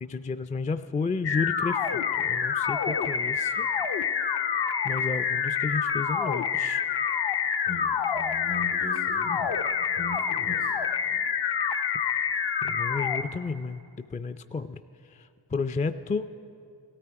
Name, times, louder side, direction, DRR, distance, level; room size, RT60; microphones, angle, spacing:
voice 1, 0.0-3.7 4.8-6.8 12.6-14.8 15.1-16.3, left 4 dB, 20° left, 10 dB, 0.3 m, -32 dB
sound 1, 1.2-13.2, left 7 dB, 60° left, 0.7 m, -27 dB
voice 2, 7.7-9.5 10.0-10.7 11.1-11.2, left 2 dB, 90° left, 1 dB, 3.4 m, -39 dB
17.5 x 13.5 x 4.7 m, 2.5 s
cardioid pair, 60°, 46 cm